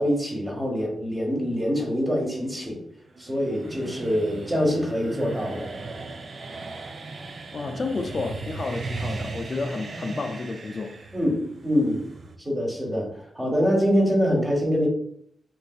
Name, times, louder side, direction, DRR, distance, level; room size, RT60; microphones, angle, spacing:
voice 1, 0.0-2.8 3.2-5.7 11.1-12.0 12.4-14.9, equal, 20° right, 1.3 m, -24 dB
sound 1, 1.2-12.4, right 3 dB, 60° right, 0.4 m, -37 dB
voice 2, 7.5-11.0, left 3 dB, 50° left, 0.3 m, -31 dB
3.8 x 2.5 x 2.3 m
cardioid pair, 65°, 0 cm